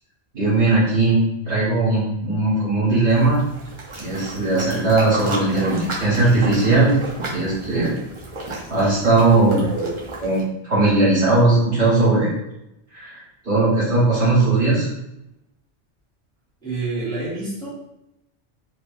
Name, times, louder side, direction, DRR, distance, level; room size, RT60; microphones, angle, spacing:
voice 1, 0.3-1.2 1.4-3.4 4.0-7.0 7.3-8.0 8.7-9.9 10.2-12.3 12.9-14.9, right 2 dB, 55° right, -12 dB, 1.7 m, -18 dB
sound 1, 3.1-10.4, right 2 dB, 35° right, 0.5 m, -33 dB
voice 2, 16.6-17.7, right 3 dB, 5° left, -9 dB, 0.8 m, -27 dB
3.1 x 2.2 x 2.4 m, 0.86 s
omnidirectional pair, 1.2 m